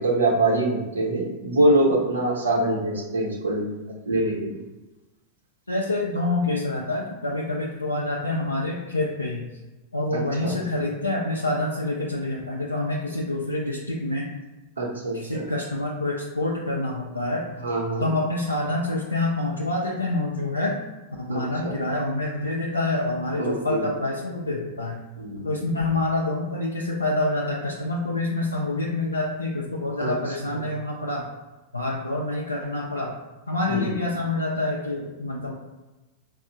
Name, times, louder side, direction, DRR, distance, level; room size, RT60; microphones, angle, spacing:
voice 1, 0.0-3.8 4.0-4.6 10.1-10.6 14.8-15.5 17.6-18.1 21.3-21.8 23.4-23.9 25.2-25.5 30.0-30.1 30.5-30.6 33.7-33.9, right 2 dB, 75° right, -2 dB, 0.7 m, -24 dB
voice 2, 5.7-9.5 9.9-14.3 15.1-17.4 18.0-20.8 21.2-25.0 25.4-31.3 31.7-33.1 33.5-35.5, left 2 dB, 85° left, -2 dB, 0.3 m, -27 dB
4.2 x 2.0 x 2.5 m, 1.1 s
figure-of-eight pair, 90°, 0 cm